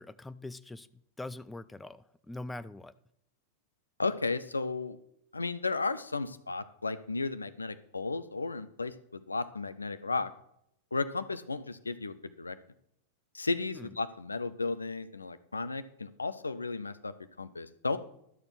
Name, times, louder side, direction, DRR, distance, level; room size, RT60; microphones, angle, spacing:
voice 1, 0.0-3.0 13.7-13.9, left 2 dB, 10° left, 0.5 m, -43 dB
voice 2, 4.0-5.0 5.3-10.3 10.9-12.6 13.3-18.0, left 3 dB, 80° left, 0.6 m, -34 dB
12.5 x 6.9 x 5.9 m
figure-of-eight pair, 90°, 0 cm